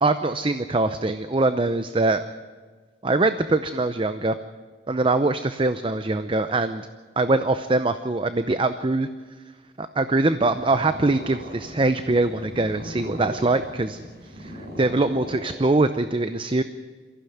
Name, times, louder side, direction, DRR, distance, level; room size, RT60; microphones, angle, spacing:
voice 1, 0.0-2.2 3.0-4.3 4.9-6.9 7.2-9.1 9.8-14.0 14.4-14.5 14.8-16.6, right 2 dB, 30° right, 10 dB, 0.7 m, -23 dB
Purr, 10.4-16.0, equal, 65° right, 5.0 m, -39 dB
23.5 x 15.5 x 9.3 m, 1.5 s
head